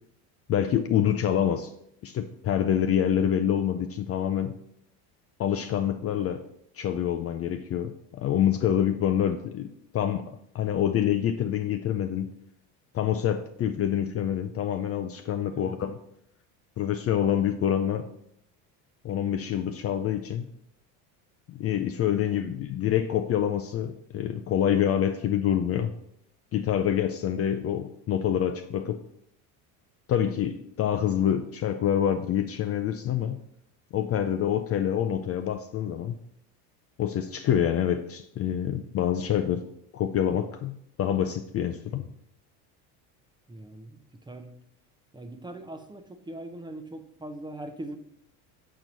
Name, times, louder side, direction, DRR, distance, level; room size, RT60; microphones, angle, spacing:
voice 1, 0.5-1.7 2.0-4.6 5.4-6.4 6.8-12.3 12.9-16.0 16.8-18.1 19.0-20.5 21.5-25.9 26.5-29.0 30.1-33.4 33.9-36.2 37.0-39.6 39.9-42.1, left 9 dB, 35° left, 7 dB, 0.5 m, -26 dB
voice 2, 15.5-15.8 22.2-22.5 43.5-44.6 45.1-48.0, right 1 dB, 10° right, 7 dB, 0.7 m, -41 dB
7.6 x 4.6 x 5.3 m, 0.74 s
supercardioid pair, 120°, 42 cm